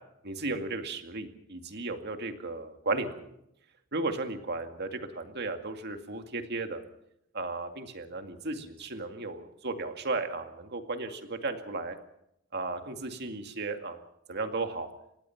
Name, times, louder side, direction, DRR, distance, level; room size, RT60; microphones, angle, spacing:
voice 1, 0.2-3.1 3.9-6.8 7.3-12.0 12.5-14.0 14.3-14.9, right 3 dB, 55° right, 6 dB, 2.2 m, -35 dB
24.5 x 19.0 x 5.9 m, 0.79 s
head